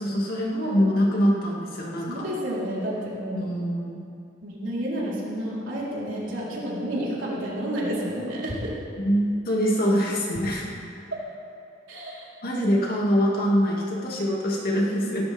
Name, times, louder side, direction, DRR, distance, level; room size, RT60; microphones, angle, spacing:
voice 1, 0.0-2.3 3.3-4.1 9.0-10.7 12.4-15.3, equal, 50° left, -3 dB, 2.4 m, -24 dB
voice 2, 2.1-3.5 4.4-8.7 11.9-12.3, equal, 90° right, -6 dB, 4.1 m, -30 dB
17.0 x 14.5 x 3.6 m, 2.6 s
head